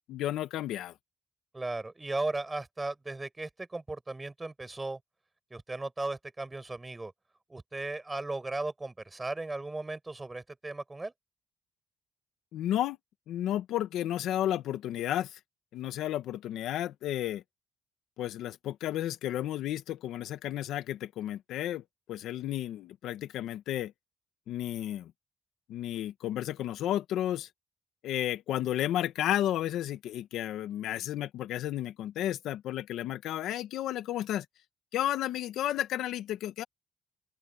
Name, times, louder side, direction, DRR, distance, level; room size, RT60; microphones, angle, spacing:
voice 1, 0.1-0.9 12.5-13.0 13.3-15.4 15.7-17.4 18.2-23.9 24.5-25.1 25.7-27.5 28.0-34.4 34.9-36.6, left 12 dB, 85° left, 1.6 m, -32 dB
voice 2, 1.5-5.0 5.5-7.1 7.5-11.1, right 2 dB, 20° right, 6.3 m, -36 dB
open air
cardioid pair, 75°, 0 cm